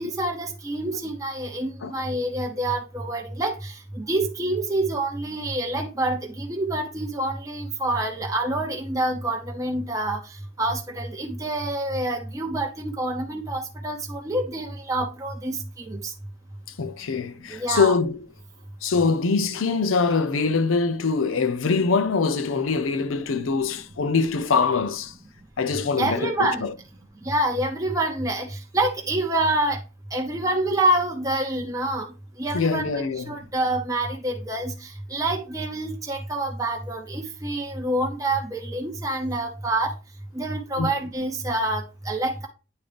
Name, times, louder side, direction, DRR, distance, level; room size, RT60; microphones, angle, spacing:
voice 1, 0.0-10.2 10.6-16.1 17.5-17.9 26.0-26.6 27.2-29.8 30.1-32.1 32.4-39.9 40.3-42.5, right 1 dB, 15° right, 0.7 m, -27 dB
voice 2, 16.8-18.3 18.8-25.1 25.6-26.7 32.5-33.4 40.8-40.9, left 4 dB, 80° left, 0.6 m, -23 dB
9.2 x 3.8 x 3.3 m
head